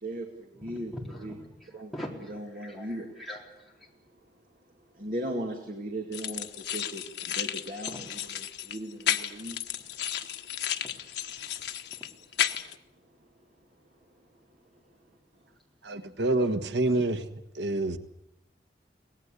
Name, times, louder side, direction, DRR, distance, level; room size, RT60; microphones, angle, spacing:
voice 1, 0.0-1.4 1.7-3.1 3.9-4.2 4.5-10.0 10.4-10.5 11.5-11.8 12.4-12.6 13.2-15.2, right 1 dB, 50° right, 2 dB, 2.4 m, -39 dB
voice 2, 0.6-1.3 1.9-3.9 7.9-8.0 16.4-16.5 16.9-17.0, equal, ahead, -2 dB, 4.0 m, -42 dB
sound 1, 6.1-12.8, left 10 dB, 80° left, 1.2 m, -33 dB
voice 3, 15.8-18.0, right 2 dB, 90° right, 11 dB, 1.4 m, -27 dB
24.0 x 18.5 x 8.4 m, 0.82 s
head